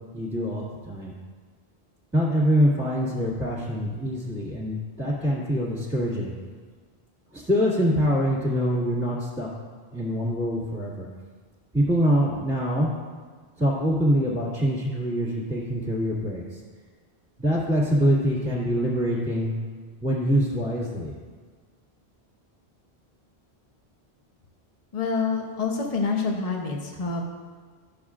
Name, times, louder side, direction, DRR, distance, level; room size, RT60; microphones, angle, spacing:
voice 1, 0.1-1.1 2.1-6.3 7.3-9.5 9.9-11.1 11.7-12.9 13.6-16.6 17.4-19.5 20.0-21.1, equal, 10° right, -7 dB, 1.8 m, -24 dB
voice 2, 24.9-27.2, left 4 dB, 40° left, 1 dB, 0.9 m, -27 dB
12.5 x 6.3 x 2.4 m, 1.5 s
omnidirectional pair, 1.1 m